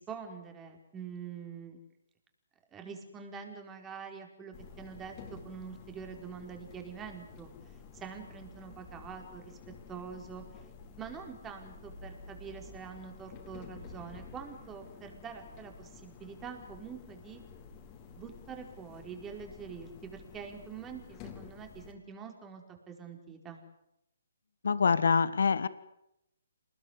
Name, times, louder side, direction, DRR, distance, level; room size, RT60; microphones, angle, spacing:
voice 1, 0.0-1.8 2.7-7.5 7.9-9.6 9.9-10.4 11.0-17.4 18.2-23.6, right 6 dB, 15° right, 4 dB, 4.7 m, -45 dB
sound 1, 4.5-21.9, left 5 dB, 25° left, 4.1 m, -51 dB
voice 2, 24.6-25.7, left 5 dB, 70° left, 15 dB, 1.5 m, -25 dB
27.5 x 20.0 x 8.2 m, 0.84 s
hypercardioid pair, 145°, 0 cm